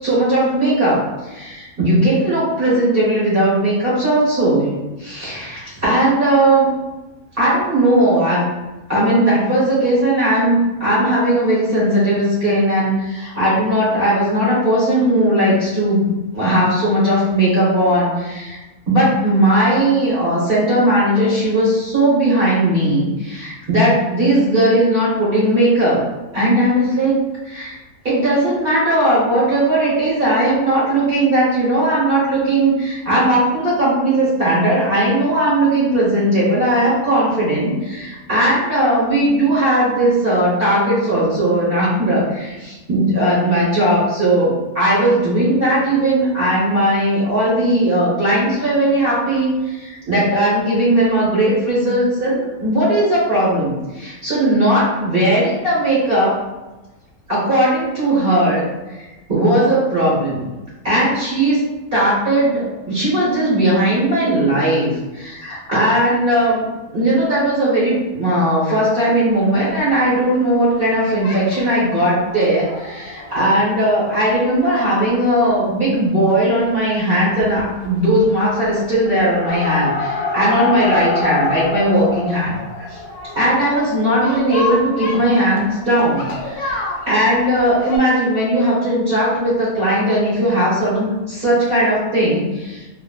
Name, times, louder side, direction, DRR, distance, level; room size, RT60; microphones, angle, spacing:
voice 1, 0.0-6.7 7.4-8.5 8.9-16.1 16.3-18.6 18.9-26.0 26.3-27.2 27.4-27.8 28.0-56.4 57.3-58.7 59.3-60.4 60.8-61.7 61.9-82.5 82.9-83.0 83.3-92.9, right 1 dB, 45° right, -9 dB, 1.1 m, -17 dB
sound 1, 69.3-70.9 71.2-71.8 72.3-74.3 74.8-74.9 75.0-75.1 75.4-75.5 76.9-77.1 77.4-77.9 78.2-78.7 79.0-88.0, left 3 dB, 90° left, 1.1 m, -27 dB
3.6 x 2.0 x 2.3 m, 1.1 s
omnidirectional pair, 1.6 m